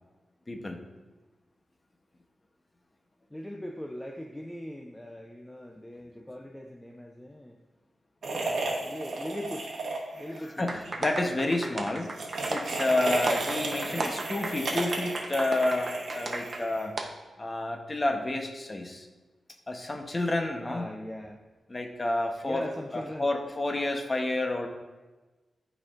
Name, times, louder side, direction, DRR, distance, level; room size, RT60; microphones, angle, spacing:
voice 1, 0.5-0.8 10.6-12.1 12.5-17.0 17.4-19.1 19.7-20.9 21.7-22.6 22.9-24.7, left 2 dB, 25° left, 3 dB, 0.7 m, -30 dB
voice 2, 3.3-7.6 8.4-9.7 10.1-10.8 13.8-13.9 17.3-17.6 20.6-21.4 22.5-23.3, left 1 dB, 10° left, 2 dB, 0.4 m, -40 dB
sound 1, 8.2-10.4 10.7-10.9 12.0-17.0, right 2 dB, 70° right, 1.1 m, -33 dB
sound 2, 10.7-16.6 17.0-17.1, right 2 dB, 35° right, 0.7 m, -34 dB
12.0 x 4.3 x 2.4 m, 1.2 s
wide cardioid pair, 140°, 0 cm